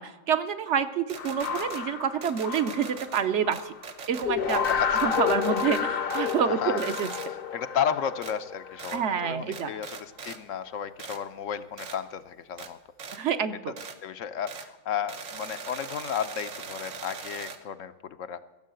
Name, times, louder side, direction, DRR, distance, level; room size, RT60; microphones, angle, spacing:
voice 1, 0.0-3.7 4.1-4.7 5.0-7.1 8.9-9.7 13.1-13.7, right 7 dB, 65° right, 9 dB, 1.0 m, -28 dB
sound 1, 1.1-1.8 2.2-3.2 3.5-5.8 6.1-6.4 6.8-7.3 8.2-8.3 8.8-9.0 9.5-10.4 11.0-11.2 11.8-12.0 12.6-12.7 13.0-13.2 13.8-14.0 14.5-14.7 15.1-17.6, right 5 dB, 80° right, 1.4 m, -41 dB
sound 2, 1.2-3.8 4.2-9.3, left 7 dB, 50° left, 0.8 m, -30 dB
voice 2, 4.7-5.0 6.4-6.8 7.5-13.3 14.0-18.4, left 8 dB, 75° left, 10 dB, 1.1 m, -33 dB
16.0 x 7.4 x 7.7 m, 1.1 s
omnidirectional pair, 1.3 m